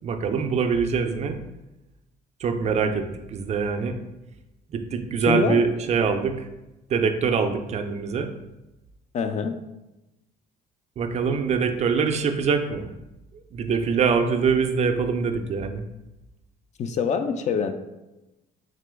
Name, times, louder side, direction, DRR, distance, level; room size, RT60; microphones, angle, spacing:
voice 1, 0.0-1.4 2.4-4.0 4.7-6.5 6.9-8.3 11.0-12.9 13.5-15.8, right 5 dB, 40° right, 6 dB, 0.4 m, -24 dB
voice 2, 5.3-5.6 9.1-9.6 16.8-17.7, left 6 dB, 45° left, 8 dB, 0.4 m, -25 dB
3.7 x 2.9 x 3.4 m, 0.98 s
cardioid pair, 110°, 17 cm